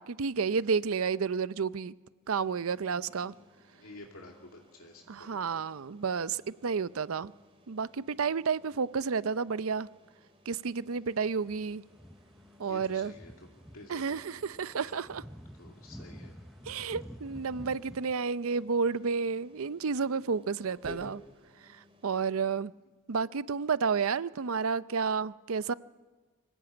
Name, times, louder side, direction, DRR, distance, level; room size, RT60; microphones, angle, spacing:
voice 1, 0.0-1.9 2.3-3.3 5.1-7.3 7.7-9.9 10.5-11.8 12.6-13.1 13.9-15.2 16.7-21.2 22.0-22.7 23.1-25.7, right 5 dB, 80° right, 0.6 m, -31 dB
sound 1, 2.2-22.2, equal, 30° right, 3.4 m, -57 dB
voice 2, 3.1-3.4 3.7-5.6 10.8-11.1 12.7-15.0 15.6-16.3, left 2 dB, 80° left, 2.4 m, -51 dB
sound 2, 11.1-18.1, equal, ahead, 0.8 m, -50 dB
24.5 x 16.5 x 8.9 m
head